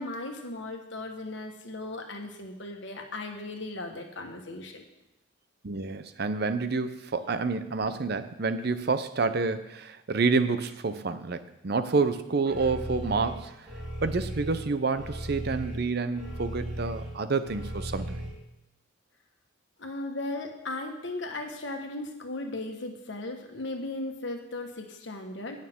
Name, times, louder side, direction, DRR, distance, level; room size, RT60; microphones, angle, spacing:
voice 1, 0.0-4.8 19.8-25.6, left 2 dB, 60° left, 3 dB, 1.4 m, -37 dB
voice 2, 5.6-13.6 14.0-18.2, right 4 dB, 50° right, 12 dB, 0.6 m, -28 dB
sound 1, 12.5-18.3, equal, 5° right, 4.0 m, -37 dB
18.5 x 6.6 x 3.6 m, 0.92 s
head